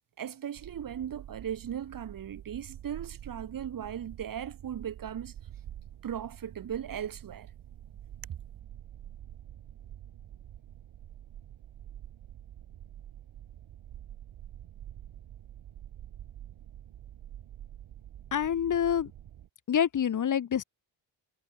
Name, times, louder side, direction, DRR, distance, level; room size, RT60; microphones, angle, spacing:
voice 1, 0.2-5.3 6.0-7.5, right 9 dB, 45° right, 1.0 m, -37 dB
sound 1, 0.5-19.5, right 11 dB, 90° right, 4.7 m, -47 dB
voice 2, 18.3-19.1 19.7-20.6, left 8 dB, 40° left, 0.8 m, -27 dB
wide cardioid pair, 160°, 47 cm